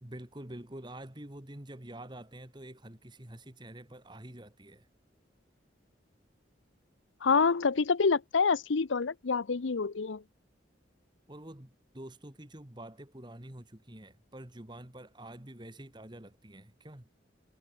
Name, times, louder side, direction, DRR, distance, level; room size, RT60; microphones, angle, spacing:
voice 1, 0.0-4.9 11.3-17.1, right 1 dB, 25° right, 1.8 m, -47 dB
voice 2, 7.2-10.2, left 5 dB, 90° left, 0.7 m, -27 dB
head